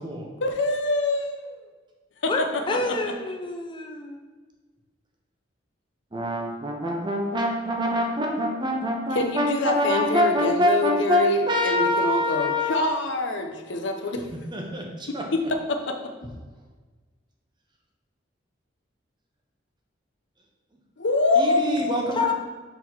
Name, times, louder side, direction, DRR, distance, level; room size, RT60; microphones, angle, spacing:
voice 1, 0.4-1.7 2.2-2.4 9.1-14.3 15.7-16.0 21.0-22.1, left 2 dB, 75° left, 4 dB, 0.7 m, -25 dB
voice 2, 2.3-4.2 22.2-22.3, left 3 dB, 25° left, 3 dB, 0.6 m, -28 dB
voice 3, 6.1-12.8 14.5-15.2 21.4-22.3, left 1 dB, 25° right, 1 dB, 0.8 m, -25 dB
5.9 x 3.8 x 4.5 m, 1.3 s
head